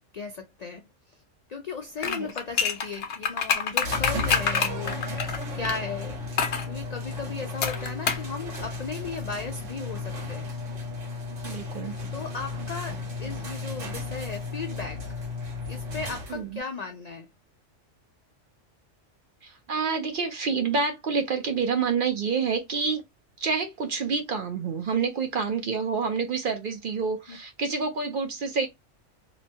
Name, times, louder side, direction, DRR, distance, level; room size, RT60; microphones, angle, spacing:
voice 1, 0.1-0.8 1.5-5.3 5.5-6.2 6.7-10.5 12.1-15.0 15.7-17.3 27.3-27.4, left 4 dB, 75° left, 0.3 m, -36 dB
sound 1, 2.0-5.8 6.4-6.7 7.6-8.3 8.5-8.6, left 6 dB, 60° left, 0.8 m, -26 dB
sound 2, 3.8-16.6, left 3 dB, 75° right, 1.4 m, -34 dB
voice 2, 11.4-12.0 16.3-16.6 19.4-23.0 23.4-28.7, right 5 dB, 55° right, 0.6 m, -28 dB
2.9 x 2.2 x 2.6 m
omnidirectional pair, 1.3 m